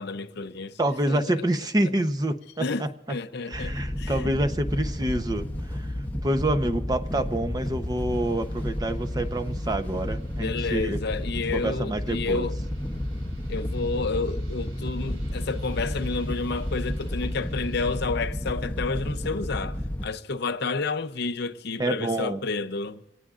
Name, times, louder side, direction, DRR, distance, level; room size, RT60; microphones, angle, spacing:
voice 1, 0.0-0.8 1.1-1.3 2.6-4.3 10.4-12.6 13.5-23.0, left 4 dB, 55° left, 0.7 m, -30 dB
voice 2, 0.8-2.9 3.5-5.9 6.2-11.0 11.5-12.5 21.8-22.4, right 1 dB, 20° right, 0.8 m, -27 dB
Wind / Boat Water vehicle, 3.5-20.0, left 1 dB, 10° left, 0.8 m, -31 dB
sound 1, 8.1-18.0, right 1 dB, 75° right, 4.0 m, -53 dB
26.0 x 18.5 x 2.5 m
head